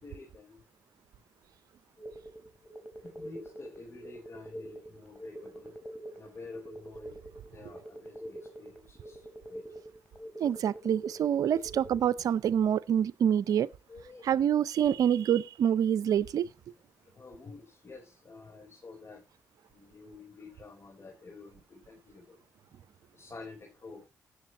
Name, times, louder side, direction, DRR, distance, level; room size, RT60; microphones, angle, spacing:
voice 1, 0.0-0.6 3.1-5.7 6.1-7.2 7.5-9.2 9.5-9.6 13.9-14.3 17.1-19.2 19.7-22.4 23.1-24.1, left 3 dB, 45° left, 4.1 m, -49 dB
sound 1, 2.0-12.0, right 1 dB, 20° left, 3.9 m, -46 dB
voice 2, 10.4-13.7 14.2-16.5, right 9 dB, 70° right, 0.6 m, -26 dB
18.5 x 7.8 x 2.9 m
supercardioid pair, 45°, 6 cm